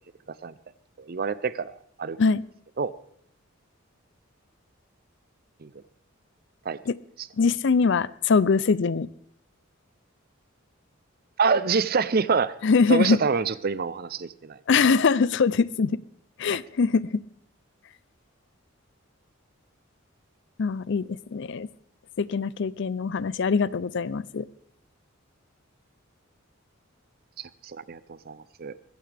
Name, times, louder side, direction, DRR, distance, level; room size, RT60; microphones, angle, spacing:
voice 1, 1.0-2.2 2.8-2.9 5.6-5.7 6.6-6.8 7.2-7.3 11.4-12.6 12.9-14.6 16.5-16.6 27.4-28.7, right 5 dB, 45° right, 16 dB, 0.6 m, -27 dB
voice 2, 7.4-9.1 12.6-13.2 14.7-16.0 16.4-17.2 20.6-21.7 22.2-24.5, left 5 dB, 60° left, 19 dB, 0.5 m, -23 dB
21.0 x 15.5 x 3.4 m, 0.68 s
head